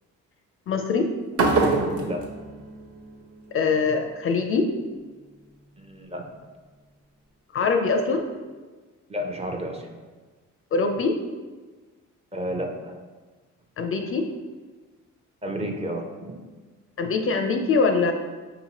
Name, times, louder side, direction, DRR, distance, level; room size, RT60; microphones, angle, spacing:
voice 1, 0.7-1.1 3.5-4.7 7.5-8.2 10.7-11.1 13.8-14.3 17.0-18.1, left 4 dB, 45° left, 5 dB, 0.4 m, -23 dB
sound 1, 1.3-3.4, right 3 dB, 50° right, 0.8 m, -25 dB
voice 2, 5.8-6.2 9.1-9.9 12.3-13.0 15.4-16.4, equal, 20° right, 2 dB, 0.6 m, -31 dB
5.2 x 2.9 x 2.8 m, 1.3 s
supercardioid pair, 75°, 31 cm